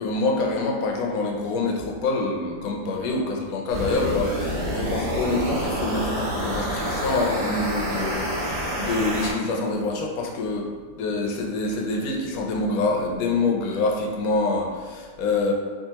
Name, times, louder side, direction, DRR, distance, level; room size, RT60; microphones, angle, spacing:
voice 1, 0.0-8.3 8.8-10.6 11.0-15.5, left 3 dB, 70° left, 0 dB, 0.9 m, -26 dB
sound 1, 3.7-9.3, equal, 75° right, 1.5 m, -28 dB
3.6 x 2.4 x 2.8 m, 1.5 s
omnidirectional pair, 1.8 m